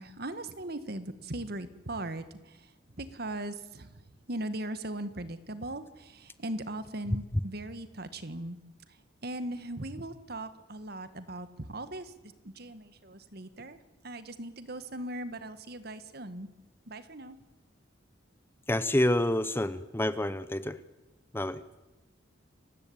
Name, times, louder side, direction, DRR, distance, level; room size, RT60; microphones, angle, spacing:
voice 1, 0.0-2.7 3.0-4.0 4.3-8.6 9.2-12.1 12.4-13.8 14.0-16.5 16.9-17.4, right 1 dB, 55° right, 12 dB, 1.8 m, -39 dB
voice 2, 18.7-20.8 21.3-21.6, left 1 dB, 10° left, 14 dB, 0.9 m, -28 dB
29.5 x 16.5 x 8.9 m, 1.1 s
head